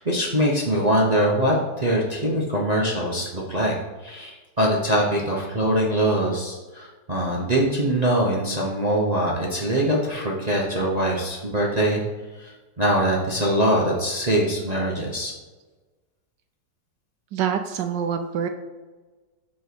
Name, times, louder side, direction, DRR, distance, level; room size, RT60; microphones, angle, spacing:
voice 1, 0.0-3.7 4.0-12.0 12.4-15.3, right 1 dB, 35° right, -3 dB, 0.7 m, -23 dB
voice 2, 17.3-18.5, right 8 dB, 70° right, 7 dB, 1.1 m, -25 dB
6.2 x 4.6 x 6.0 m, 1.3 s
omnidirectional pair, 2.3 m